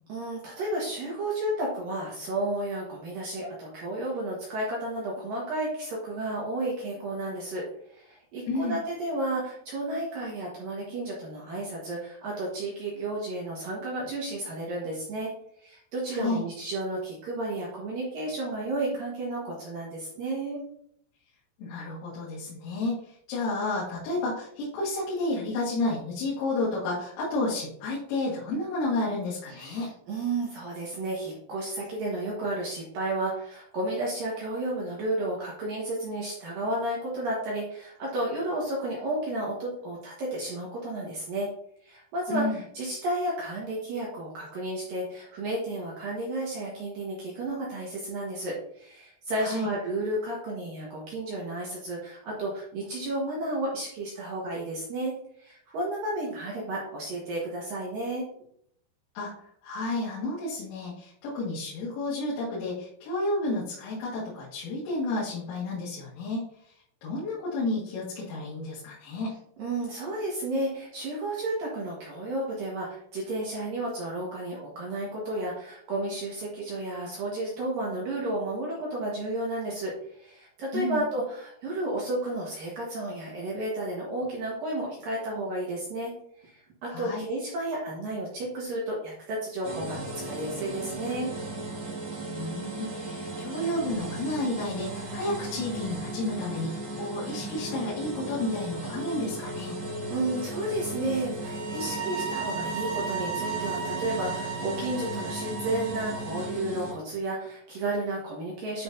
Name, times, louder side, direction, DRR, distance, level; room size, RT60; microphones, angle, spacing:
voice 1, 0.1-15.3 15.6-20.6 29.5-41.5 41.8-58.2 69.6-91.3 100.1-108.8, right 1 dB, 65° right, -4 dB, 2.3 m, -32 dB
voice 2, 21.6-29.9 42.3-42.6 49.4-49.7 59.2-59.3 59.6-66.7 67.0-69.3 80.7-81.0 86.9-87.2 92.3-99.8, left 2 dB, 85° left, -8 dB, 4.6 m, -31 dB
sound 1, 89.6-106.9, right 2 dB, 45° right, 1.9 m, -36 dB
sound 2, 101.4-106.6, right 5 dB, 90° right, 4.2 m, -35 dB
10.0 x 5.9 x 2.7 m, 0.68 s
omnidirectional pair, 5.8 m